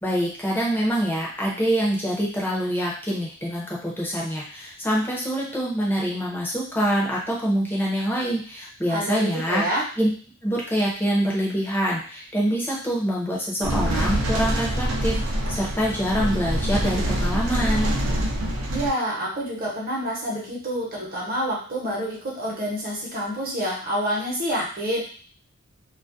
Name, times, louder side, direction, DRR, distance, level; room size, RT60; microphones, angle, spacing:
voice 1, 0.0-9.6 10.0-10.1 10.4-17.9, equal, 10° left, -4 dB, 0.6 m, -25 dB
voice 2, 8.9-9.8 18.7-25.0, equal, 45° right, -4 dB, 0.8 m, -28 dB
sound 1, 13.6-18.9, equal, 85° right, 0.5 m, -25 dB
2.3 x 2.1 x 2.5 m, 0.42 s
head